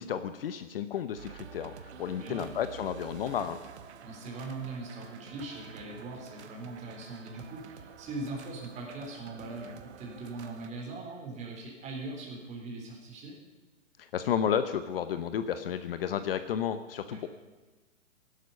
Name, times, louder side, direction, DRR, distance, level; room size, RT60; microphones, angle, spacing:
voice 1, 0.0-1.7 2.0-3.6 14.1-17.3, left 9 dB, 50° left, 11 dB, 0.9 m, -32 dB
sound 1, 1.2-10.7, right 7 dB, 60° right, 1.3 m, -49 dB
voice 2, 2.1-2.5 4.0-13.4 17.1-17.3, right 2 dB, 20° right, -1 dB, 4.0 m, -41 dB
17.0 x 12.0 x 5.5 m, 1.3 s
hypercardioid pair, 145°, 38 cm